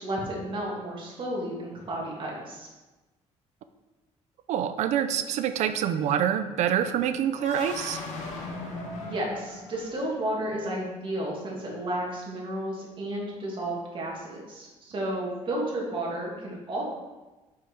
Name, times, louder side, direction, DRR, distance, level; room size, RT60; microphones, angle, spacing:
voice 1, 0.0-2.7 9.0-16.8, right 1 dB, 40° right, -3 dB, 2.0 m, -32 dB
voice 2, 4.5-8.0, right 9 dB, 70° right, 10 dB, 0.5 m, -26 dB
sound 1, 7.3-10.3, left 2 dB, 75° left, 1.3 m, -38 dB
5.5 x 4.9 x 4.4 m, 1.1 s
cardioid pair, 110°, 12 cm